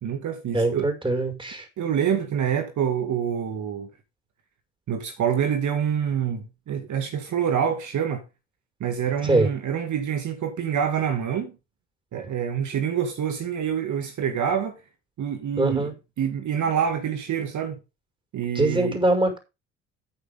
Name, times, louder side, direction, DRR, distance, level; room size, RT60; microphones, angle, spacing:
voice 1, 0.0-0.9 1.8-3.9 4.9-8.2 8.8-11.5 12.1-14.8 15.2-15.9 16.2-17.8 18.3-19.0, right 8 dB, 55° right, 2.2 m, -26 dB
voice 2, 0.5-1.7 9.2-9.5 15.6-15.9 18.5-19.4, right 2 dB, 15° right, 6.0 m, -22 dB
11.5 x 9.3 x 3.7 m
hypercardioid pair, 55°, 35 cm